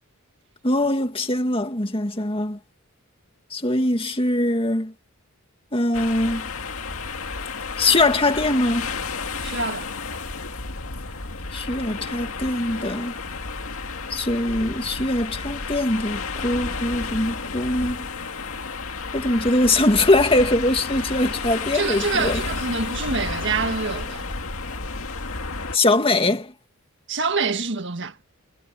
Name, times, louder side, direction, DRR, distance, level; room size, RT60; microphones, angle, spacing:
voice 1, 0.6-2.6 3.5-4.9 5.7-6.5 7.8-8.9 11.5-13.1 14.1-18.1 19.1-22.4 25.7-26.5, left 2 dB, 25° left, 2.1 m, -22 dB
sound 1, 5.9-25.8, left 4 dB, 75° left, 2.1 m, -31 dB
voice 2, 9.4-9.9 21.7-24.3 27.1-28.2, right 4 dB, 55° right, 1.7 m, -26 dB
head